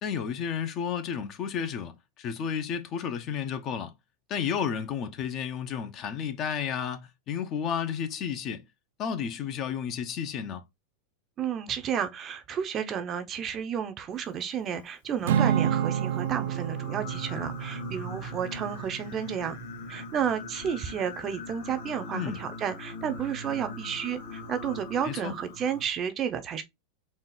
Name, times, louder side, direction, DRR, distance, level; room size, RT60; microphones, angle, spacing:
voice 1, 0.0-3.9 4.3-8.6 9.0-10.6 22.1-22.4 25.0-25.3, left 7 dB, 35° left, 0.7 m, -32 dB
voice 2, 11.4-19.6 19.9-26.6, right 8 dB, 30° right, 0.6 m, -32 dB
Singing, 15.1-25.8, left 2 dB, 70° left, 1.8 m, -41 dB
Acoustic guitar / Strum, 15.3-19.7, right 9 dB, 75° right, 0.5 m, -30 dB
4.1 x 2.4 x 3.8 m
supercardioid pair, 145°, 0 cm